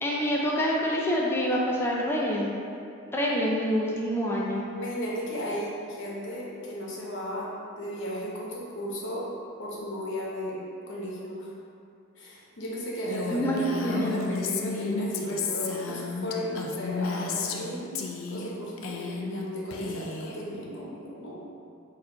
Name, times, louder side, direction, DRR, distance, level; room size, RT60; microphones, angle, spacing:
voice 1, 0.0-2.5 3.1-4.6 13.3-14.1, equal, 10° left, -3 dB, 0.4 m, -26 dB
voice 2, 4.7-7.5 7.8-9.3 9.6-10.6 10.9-11.5 12.2-17.9 18.3-21.3, equal, 65° left, -4 dB, 0.8 m, -35 dB
Female speech woman speaking, 13.1-17.7 18.0-18.5 18.8-19.4 19.7-20.4, left 4 dB, 90° left, 0.4 m, -33 dB
4.3 x 2.5 x 3.8 m, 2.5 s
head